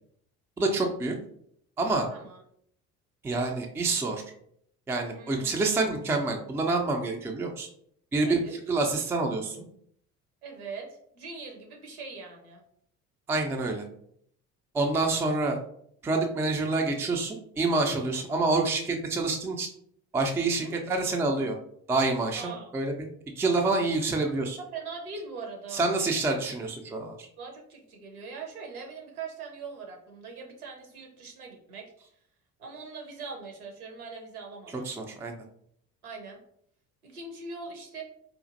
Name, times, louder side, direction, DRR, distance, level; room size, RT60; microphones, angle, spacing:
voice 1, 0.6-1.2 1.8-2.1 3.2-4.2 4.9-7.7 8.1-8.4 8.7-9.6 13.3-13.8 14.7-15.6 16.0-19.7 20.1-21.6 21.9-22.9 23.4-24.6 25.7-27.3 34.9-35.3, right 3 dB, 5° right, 2 dB, 0.3 m, -27 dB
voice 2, 5.1-5.7 8.2-8.5 10.4-12.6 20.5-20.7 22.3-22.7 24.6-25.9 27.4-31.9 32.6-34.9 36.0-36.4 37.0-38.0, right 4 dB, 80° right, 1 dB, 0.8 m, -41 dB
4.1 x 2.4 x 2.5 m, 0.67 s
figure-of-eight pair, 50°, 43 cm